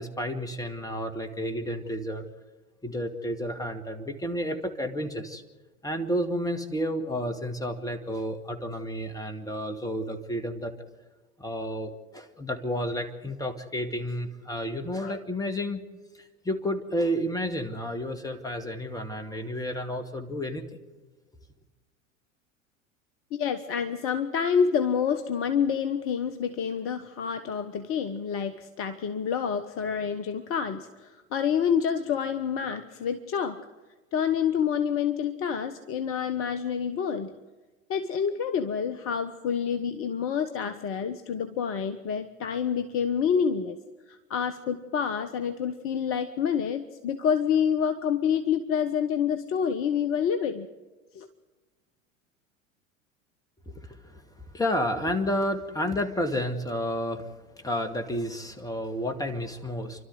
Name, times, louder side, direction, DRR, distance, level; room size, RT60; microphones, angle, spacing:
voice 1, 0.0-2.3 2.8-5.4 5.8-10.7 11.4-15.8 16.2-20.6 53.7-60.0, equal, 10° left, 6 dB, 2.2 m, -31 dB
voice 2, 23.3-33.7 34.1-37.3 37.9-43.8 44.1-50.7 51.1-51.3, left 7 dB, 35° left, 10 dB, 1.1 m, -28 dB
29.5 x 12.5 x 8.0 m, 1.3 s
figure-of-eight pair, 80°, 39 cm